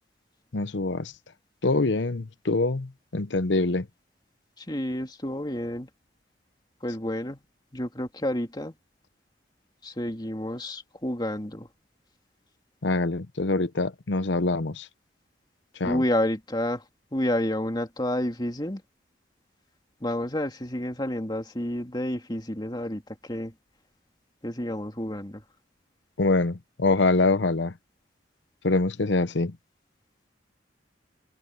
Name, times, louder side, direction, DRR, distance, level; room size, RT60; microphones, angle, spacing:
voice 1, 0.5-1.1 1.6-3.9 12.8-14.9 15.8-16.0 26.2-27.7 28.6-29.6, left 3 dB, 75° left, 0.9 m, -25 dB
voice 2, 4.6-5.9 6.8-7.4 7.7-8.7 9.8-11.7 15.8-16.8 17.1-18.8 20.0-23.5 24.4-25.4, left 1 dB, 25° left, 2.6 m, -30 dB
open air
head